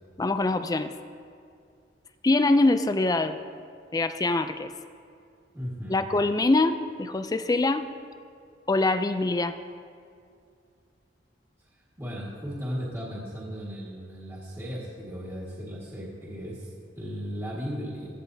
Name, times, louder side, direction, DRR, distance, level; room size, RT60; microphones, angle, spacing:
voice 1, 0.2-0.9 2.2-3.4 3.9-4.7 5.9-7.9 8.7-9.6, left 2 dB, 20° left, 10 dB, 0.4 m, -24 dB
voice 2, 5.5-6.0 12.0-16.7 16.9-18.1, equal, 15° right, -6 dB, 1.8 m, -36 dB
16.0 x 13.5 x 2.8 m, 2.3 s
head